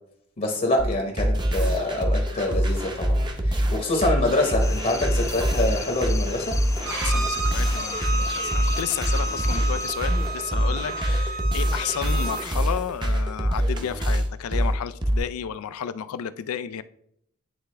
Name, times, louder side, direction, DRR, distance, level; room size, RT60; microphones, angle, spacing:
voice 1, 0.4-6.6, left 2 dB, 40° left, 0.9 m, -26 dB
sound 1, 0.8-15.2, equal, 20° right, 0.7 m, -25 dB
sound 2, 4.6-9.9, left 4 dB, 15° left, 0.3 m, -36 dB
Bowed string instrument, 6.8-12.4, right 3 dB, 65° right, 1.0 m, -32 dB
voice 2, 6.9-16.8, left 9 dB, 90° left, 0.3 m, -32 dB
9.4 x 3.5 x 3.3 m
head